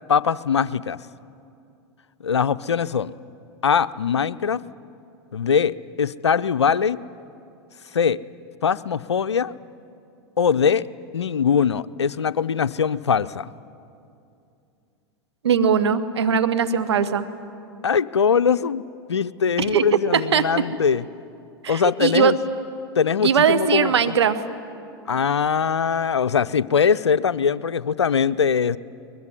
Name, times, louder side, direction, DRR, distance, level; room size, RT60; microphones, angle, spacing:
voice 1, 0.1-1.0 2.2-3.1 3.6-4.6 5.3-7.0 7.9-8.2 8.6-9.5 10.4-10.8 11.1-13.5 17.8-21.0 21.7-22.4 23.0-24.2 25.1-28.8, left 6 dB, 90° left, 16 dB, 0.6 m, -21 dB
voice 2, 15.4-17.3 19.7-19.9 20.1-20.5 21.6-22.4 23.2-24.4, right 7 dB, 80° right, 11 dB, 1.4 m, -20 dB
21.5 x 21.5 x 9.8 m, 2.6 s
hypercardioid pair, 95°, 14 cm